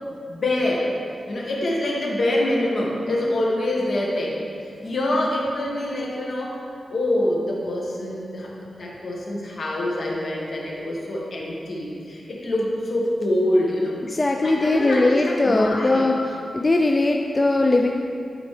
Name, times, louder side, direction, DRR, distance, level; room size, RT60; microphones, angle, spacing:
voice 1, 0.3-0.9 1.3-6.6 6.9-13.9 14.4-16.2, left 1 dB, 65° left, -3 dB, 1.4 m, -25 dB
voice 2, 14.1-16.2 16.5-17.9, left 2 dB, 30° left, 2 dB, 0.4 m, -20 dB
12.0 x 4.1 x 3.2 m, 2.4 s
wide cardioid pair, 80°, 0 cm